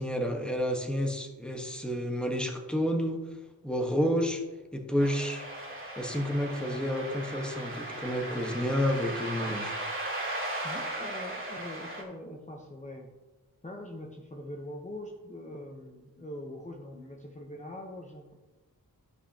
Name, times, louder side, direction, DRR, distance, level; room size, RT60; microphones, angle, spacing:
voice 1, 0.0-3.3 3.6-4.4 4.7-5.4 6.0-9.8, equal, 5° left, 3 dB, 1.3 m, -30 dB
sound 1, 5.0-12.0, right 1 dB, 35° right, 2.3 m, -37 dB
voice 2, 10.6-13.1 13.6-18.3, left 1 dB, 20° left, 0 dB, 1.0 m, -43 dB
14.0 x 5.4 x 2.9 m, 1.1 s
wide cardioid pair, 60°, 36 cm